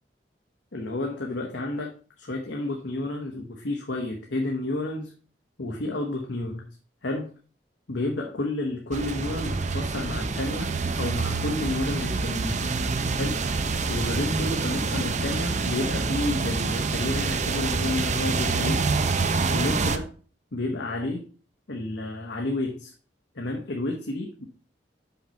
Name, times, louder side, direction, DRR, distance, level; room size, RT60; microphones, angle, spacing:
voice 1, 0.7-5.1 5.6-6.6 7.0-7.3 7.9-10.7 11.0-12.6 13.2-13.4 13.9-18.9 19.5-20.1 20.5-21.2 21.7-22.9 23.3-24.5, left 2 dB, 80° left, 0 dB, 1.1 m, -30 dB
sound 1, 8.9-20.0, right 4 dB, 40° right, 0.6 m, -27 dB
5.9 x 5.5 x 4.3 m, 0.39 s
head